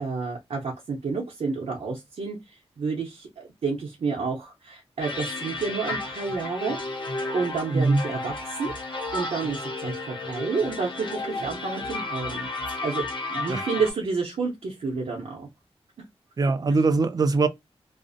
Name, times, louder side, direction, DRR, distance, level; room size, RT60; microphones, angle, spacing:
voice 1, 0.0-6.8 7.3-8.8 9.1-15.5, right 4 dB, 75° right, 0.7 m, -30 dB
sound 1, 5.0-13.9, left 2 dB, 45° left, 0.8 m, -33 dB
voice 2, 7.7-8.0 13.5-13.7 16.4-17.5, right 3 dB, 40° right, 0.3 m, -21 dB
2.4 x 2.0 x 2.5 m
wide cardioid pair, 140°, 11 cm